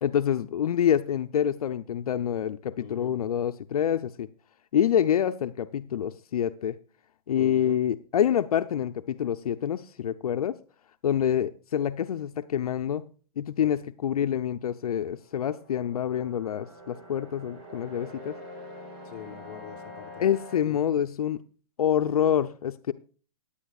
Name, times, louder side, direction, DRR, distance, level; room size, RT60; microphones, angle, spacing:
voice 1, 0.0-4.3 4.7-6.8 7.3-10.6 11.0-13.1 13.4-18.4 20.2-21.4 21.8-22.9, left 9 dB, 75° left, 0.6 m, -27 dB
voice 2, 2.8-3.1 7.4-7.8 13.6-13.7 19.0-20.2 20.7-20.8, left 9 dB, 35° left, 1.1 m, -43 dB
sound 1, 14.6-20.6, left 1 dB, 45° right, 4.4 m, -45 dB
17.0 x 9.9 x 2.4 m
hypercardioid pair, 160°, 19 cm